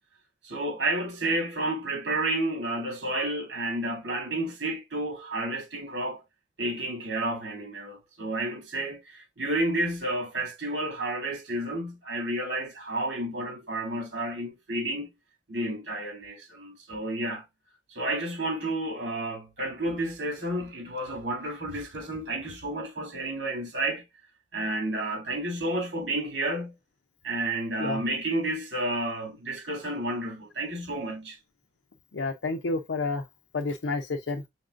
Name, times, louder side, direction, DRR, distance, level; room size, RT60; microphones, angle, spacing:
voice 1, 0.4-6.2 6.6-15.1 15.5-17.4 17.9-24.0 24.5-26.7 27.2-31.4, right 1 dB, 85° right, 2.8 m, -31 dB
voice 2, 32.1-33.2 33.5-34.4, left 3 dB, 80° left, 0.5 m, -29 dB
5.7 x 3.7 x 2.5 m
head